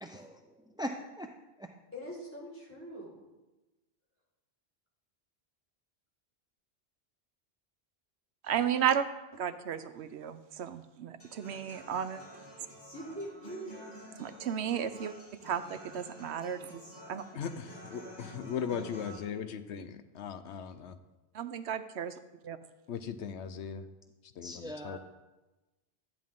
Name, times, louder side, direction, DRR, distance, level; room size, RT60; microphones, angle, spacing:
voice 1, 0.0-1.3 1.6-1.7 24.4-25.0, equal, 5° right, 4 dB, 0.3 m, -41 dB
voice 2, 1.9-3.2 12.9-13.9 18.7-19.6, equal, 10° left, -5 dB, 4.6 m, -44 dB
voice 3, 8.4-9.1 9.3-12.2 14.2-15.1 15.4-16.8 17.1-17.2 21.3-22.1 22.4-22.6, right 8 dB, 80° right, 11 dB, 0.9 m, -33 dB
Human voice / Acoustic guitar, 11.2-19.2, right 1 dB, 40° left, 2.7 m, -50 dB
voice 4, 17.3-21.0 22.9-23.9 24.2-25.0, left 7 dB, 85° left, 10 dB, 1.0 m, -38 dB
13.5 x 10.5 x 3.7 m, 1.1 s
omnidirectional pair, 1.1 m